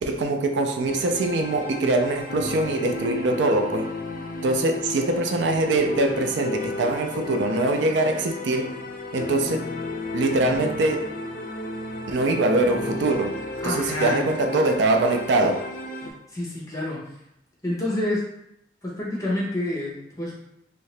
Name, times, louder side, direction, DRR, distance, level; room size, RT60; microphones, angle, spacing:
voice 1, 0.0-3.9 4.4-8.7 9.1-9.6 10.1-11.1 12.1-13.3 13.6-15.6, right 2 dB, 70° right, 4 dB, 0.4 m, -23 dB
sound 1, 0.8-16.1, left 2 dB, 50° left, 0.4 m, -33 dB
voice 2, 13.6-14.2 16.3-17.0 17.6-18.2 18.8-20.3, left 1 dB, 20° left, -5 dB, 1.0 m, -28 dB
2.9 x 2.7 x 3.2 m, 0.78 s
head